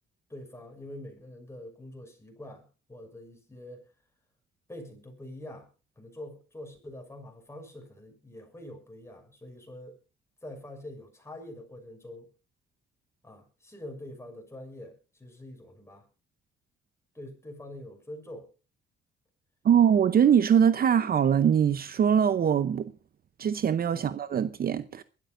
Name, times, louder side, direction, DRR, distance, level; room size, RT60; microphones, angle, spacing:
voice 1, 0.3-3.9 4.7-5.7 6.0-10.0 10.4-12.2 13.2-16.0 17.1-18.5 23.9-24.1, left 1 dB, 15° left, 6.4 m, -45 dB
voice 2, 19.6-22.9 23.4-25.0, right 8 dB, 50° right, 0.7 m, -22 dB
22.5 x 13.0 x 2.6 m
cardioid pair, 90°, 20 cm